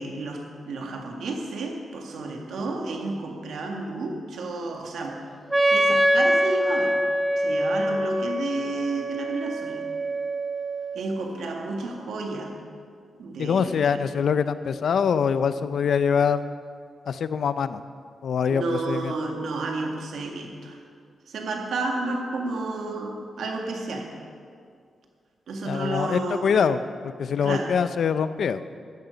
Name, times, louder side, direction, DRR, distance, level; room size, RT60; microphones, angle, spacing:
voice 1, 0.0-5.2 5.5-7.0 7.4-9.9 10.9-12.6 13.2-14.1 18.5-20.8 21.3-24.1 25.5-26.7 27.4-27.8, right 3 dB, 80° right, 2 dB, 1.8 m, -31 dB
Wind instrument woodwind instrument, 5.5-11.1, equal, 10° right, 0.8 m, -24 dB
voice 2, 13.4-16.5 17.1-17.8 18.2-19.1 25.7-26.8 27.2-28.6, left 6 dB, 70° left, 13 dB, 0.5 m, -24 dB
14.0 x 10.5 x 5.2 m, 2.2 s
cardioid pair, 95°, 0 cm